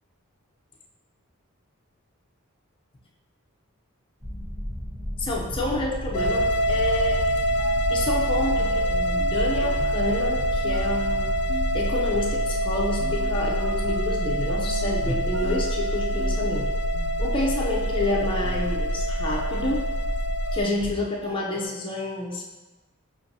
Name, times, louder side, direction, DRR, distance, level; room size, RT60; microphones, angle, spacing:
sound 1, 4.2-11.9, equal, 30° right, 1.3 m, -34 dB
voice 1, 5.2-7.2 7.9-11.2 11.7-16.7 17.2-19.9 20.5-22.4, left 2 dB, 25° left, -2 dB, 0.6 m, -29 dB
sound 2, 5.6-21.7, equal, 70° right, 0.6 m, -40 dB
sound 3, 6.1-20.6, equal, 80° left, 0.4 m, -25 dB
6.1 x 2.6 x 2.7 m, 1.2 s
head